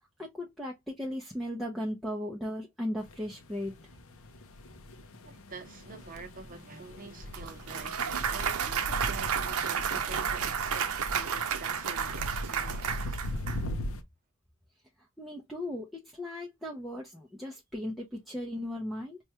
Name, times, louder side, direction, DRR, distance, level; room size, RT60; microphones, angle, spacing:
voice 1, 0.2-3.7 15.2-19.2, left 1 dB, ahead, 0.5 m, -37 dB
sound 1, 3.0-14.0, left 1 dB, 65° left, 0.6 m, -40 dB
voice 2, 5.2-13.2, right 4 dB, 40° right, 0.8 m, -46 dB
Clapping / Cheering / Applause, 7.3-13.6, right 7 dB, 75° right, 0.6 m, -32 dB
4.4 x 2.3 x 2.8 m
head